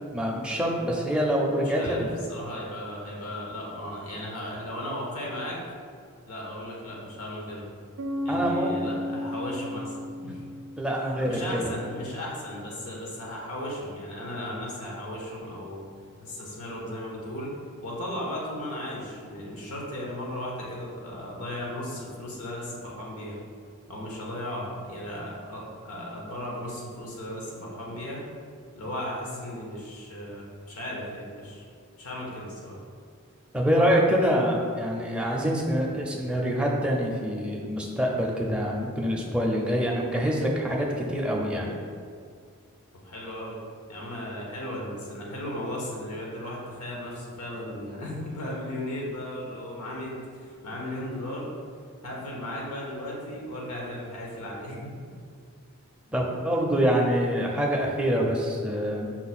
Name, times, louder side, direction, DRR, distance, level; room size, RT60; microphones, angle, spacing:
voice 1, 0.1-2.1 8.3-8.7 10.8-11.3 33.5-41.8 56.1-59.1, equal, 5° right, -2 dB, 0.4 m, -25 dB
voice 2, 1.6-5.6 6.3-7.7 8.2-10.4 11.2-15.9 16.2-17.5 17.8-23.4 23.9-28.2 28.7-31.6 32.0-32.8 43.0-43.6 43.9-51.5 52.0-54.9, left 1 dB, 80° left, -3 dB, 0.9 m, -36 dB
Bass guitar, 8.0-11.6, left 1 dB, 70° right, 0.4 m, -34 dB
5.8 x 2.1 x 4.1 m, 2.2 s
head